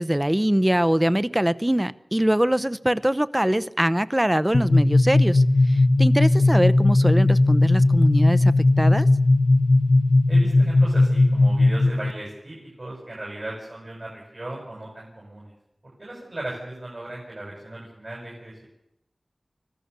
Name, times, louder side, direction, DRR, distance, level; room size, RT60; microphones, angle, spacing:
voice 1, 0.0-9.1, right 1 dB, 15° right, 15 dB, 0.8 m, -23 dB
sound 1, 4.5-12.1, left 2 dB, 80° left, 0.9 m, -18 dB
voice 2, 10.3-15.5 16.0-18.8, right 1 dB, 60° right, -3 dB, 6.7 m, -37 dB
25.0 x 15.5 x 6.8 m, 0.84 s
wide cardioid pair, 50°, 0 cm